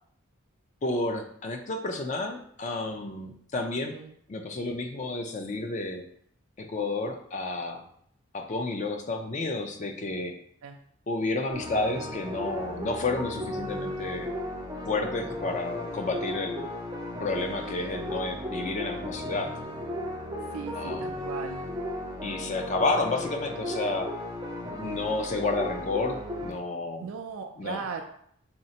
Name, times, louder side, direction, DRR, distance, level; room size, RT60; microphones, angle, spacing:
voice 1, 0.8-4.0 4.3-6.0 6.6-7.8 8.3-10.3 11.1-14.3 14.9-16.7 17.2-19.5 20.7-21.1 22.2-24.1 24.8-27.1 27.6-27.8, left 2 dB, 35° left, 5 dB, 0.4 m, -31 dB
sound 1, 11.5-26.5, left 1 dB, 15° right, 0.6 m, -35 dB
voice 2, 20.5-21.6 27.0-28.0, right 5 dB, 85° right, 4 dB, 0.4 m, -37 dB
4.3 x 3.2 x 2.8 m, 0.66 s
head